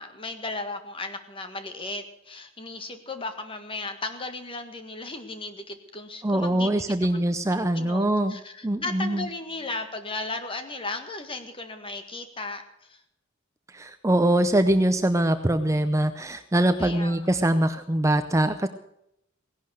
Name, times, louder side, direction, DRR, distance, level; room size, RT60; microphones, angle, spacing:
voice 1, 0.0-6.9 7.5-13.0 16.8-17.4, left 2 dB, 25° left, 7 dB, 1.7 m, -36 dB
voice 2, 6.2-8.4 8.6-9.3 13.7-18.7, right 1 dB, 15° right, 9 dB, 0.6 m, -23 dB
17.5 x 11.5 x 6.4 m, 0.78 s
head